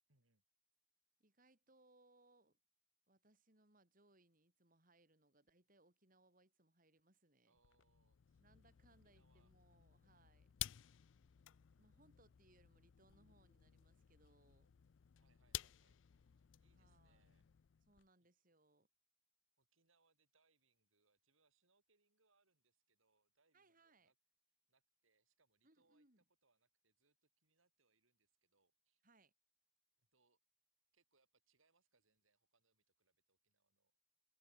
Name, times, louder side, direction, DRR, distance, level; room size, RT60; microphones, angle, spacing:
voice 1, 0.1-0.4 7.4-8.4 8.9-9.9 15.2-16.3 16.6-17.5 18.2-18.3 19.6-24.2 24.7-29.0 30.0-30.4 30.9-33.9, right 3 dB, 80° right, 4.6 m, -82 dB
voice 2, 1.2-2.6 3.1-7.6 8.4-10.5 11.8-14.7 16.7-17.4 17.9-18.9 23.5-24.1 25.6-26.2 29.0-29.3, right 2 dB, 40° right, 4.0 m, -73 dB
sound 1, 7.6-18.1, left 13 dB, 65° left, 0.4 m, -54 dB
head